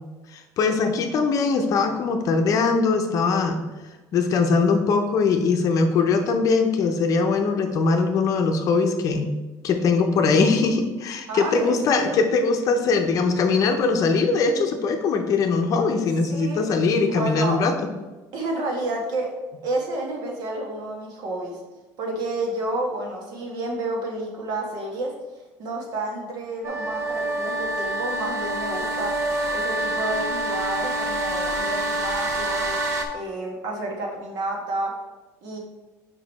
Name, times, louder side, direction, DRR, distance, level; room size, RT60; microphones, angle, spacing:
voice 1, 0.3-3.6 4.1-9.3 9.6-17.7, left 4 dB, 45° left, 5 dB, 0.7 m, -21 dB
voice 2, 11.3-12.2 16.3-16.6 17.1-17.6 18.3-19.3 19.6-21.6 22.0-25.1 25.6-29.2 29.5-32.8 33.1-35.0 35.4-35.6, right 2 dB, 55° right, 0 dB, 1.6 m, -30 dB
sound 1, 26.6-33.1, right 1 dB, 35° right, 0.8 m, -26 dB
5.3 x 5.1 x 4.1 m, 1.2 s
cardioid pair, 145°, 8 cm